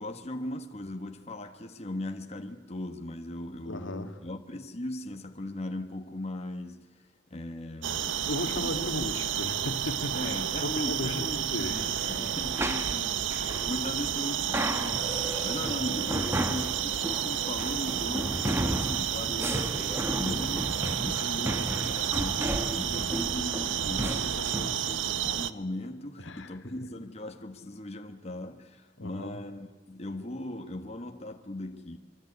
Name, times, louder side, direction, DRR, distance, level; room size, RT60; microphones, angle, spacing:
voice 1, 0.0-6.9 7.3-8.8 10.1-20.7 21.0-32.0, left 1 dB, 35° left, 1.5 m, -38 dB
voice 2, 3.7-4.1 8.3-11.2 11.5-11.8 26.2-26.6 29.0-29.3, left 1 dB, 80° left, 2.0 m, -35 dB
sound 1, 7.8-25.5, right 9 dB, 75° right, 0.9 m, -31 dB
sound 2, 12.0-24.8, right 1 dB, 15° right, 1.6 m, -34 dB
24.5 x 24.0 x 9.7 m
head